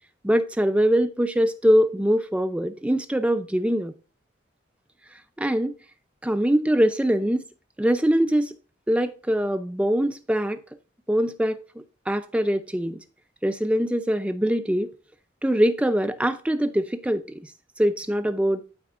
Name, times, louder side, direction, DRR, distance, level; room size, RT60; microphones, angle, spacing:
voice 1, 0.2-3.9 5.4-5.7 6.2-7.4 7.8-8.5 8.9-10.6 11.1-11.6 12.1-13.0 13.4-14.9 15.4-17.2 17.8-18.6, equal, 5° right, 0.4 m, -22 dB
12.0 x 4.4 x 2.4 m
head